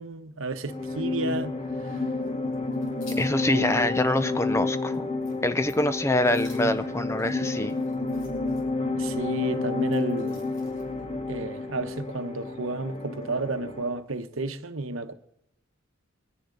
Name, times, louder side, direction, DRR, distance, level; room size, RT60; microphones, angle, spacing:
voice 1, 0.0-1.5 3.4-3.9 9.0-10.4 11.3-15.1, right 2 dB, 70° right, 1.0 m, -32 dB
sound 1, 0.7-14.0, left 3 dB, 30° left, 1.1 m, -30 dB
sound 2, 2.2-3.3 3.7-3.8 4.3-4.4 4.7-5.0 5.2-5.4 5.6-5.9 6.3-8.6 9.5-11.0, left 2 dB, 65° left, 6.2 m, -52 dB
voice 2, 3.2-5.1 5.4-7.8, left 1 dB, 15° left, 0.5 m, -25 dB
24.5 x 10.0 x 3.9 m
head